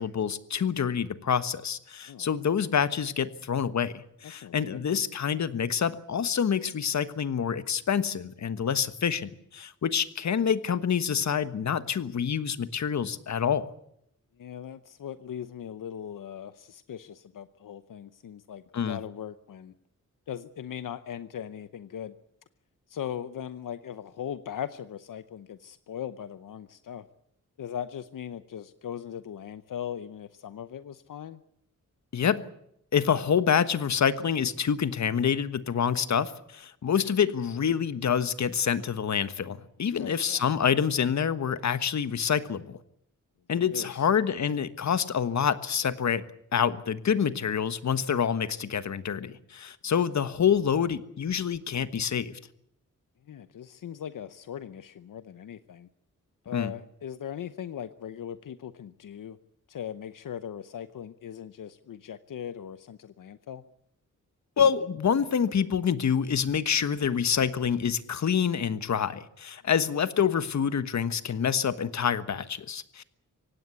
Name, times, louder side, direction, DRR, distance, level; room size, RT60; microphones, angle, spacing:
voice 1, 0.0-13.7 18.7-19.0 32.1-32.4 32.9-42.8 43.5-46.2 46.5-52.4 56.5-56.7 64.6-73.0, left 7 dB, 60° left, 13 dB, 1.4 m, -27 dB
voice 2, 2.1-2.4 4.3-4.8 14.4-19.7 20.3-22.1 22.9-27.1 27.6-31.4 40.0-40.6 43.5-44.1 53.3-55.9 56.4-59.4 59.7-63.6, left 9 dB, 80° left, 13 dB, 0.9 m, -39 dB
24.5 x 18.0 x 8.3 m, 0.74 s
wide cardioid pair, 165°, 32 cm